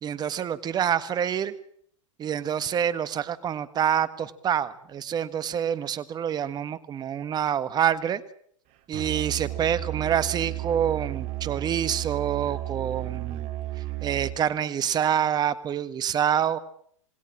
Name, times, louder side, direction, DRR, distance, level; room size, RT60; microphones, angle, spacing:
voice 1, 0.0-1.5 2.2-8.2 8.9-13.5 14.0-16.6, right 9 dB, 25° right, 14 dB, 1.6 m, -27 dB
Musical instrument, 8.9-14.4, right 15 dB, 45° right, 2.7 m, -33 dB
27.0 x 20.0 x 7.4 m, 0.64 s
hypercardioid pair, 105°, 16 cm